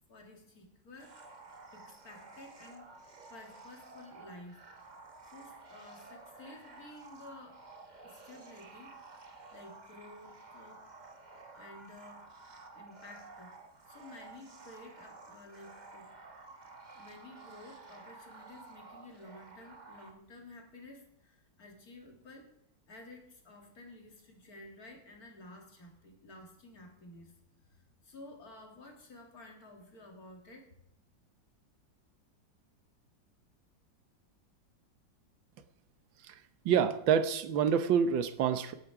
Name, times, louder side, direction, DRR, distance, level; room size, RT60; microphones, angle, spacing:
voice 1, 0.1-1.2 1.7-2.9 3.3-4.6 5.3-7.6 8.0-8.9 9.5-10.8 11.5-13.5 13.9-16.2 16.5-22.5 22.9-27.4 27.6-30.7, left 2 dB, 50° left, 2 dB, 2.6 m, -53 dB
sound 1, 1.0-20.1, right 3 dB, 30° right, 1.1 m, -52 dB
voice 2, 36.6-38.7, right 7 dB, 90° right, 11 dB, 1.7 m, -27 dB
18.0 x 8.7 x 4.7 m, 0.75 s
omnidirectional pair, 2.0 m